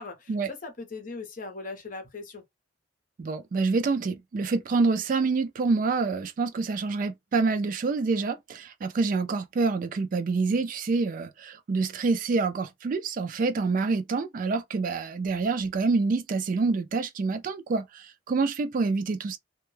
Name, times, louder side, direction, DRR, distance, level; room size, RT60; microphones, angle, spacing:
voice 1, 0.0-2.4, left 3 dB, 50° left, 0.8 m, -39 dB
voice 2, 3.2-19.4, right 4 dB, 50° right, 0.3 m, -27 dB
2.2 x 2.1 x 3.1 m
head